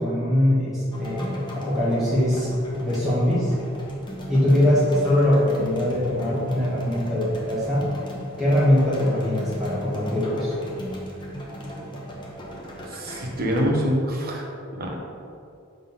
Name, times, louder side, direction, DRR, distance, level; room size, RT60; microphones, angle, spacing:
voice 1, 0.0-2.5 2.8-3.5 4.3-7.9 8.4-10.5, left 1 dB, ahead, -12 dB, 1.7 m, -22 dB
sound 1, 0.9-13.6, equal, 25° left, 1.0 m, -37 dB
voice 2, 12.9-14.5 14.7-15.0, equal, 45° right, 0 dB, 1.1 m, -25 dB
7.0 x 3.9 x 5.5 m, 2.5 s
head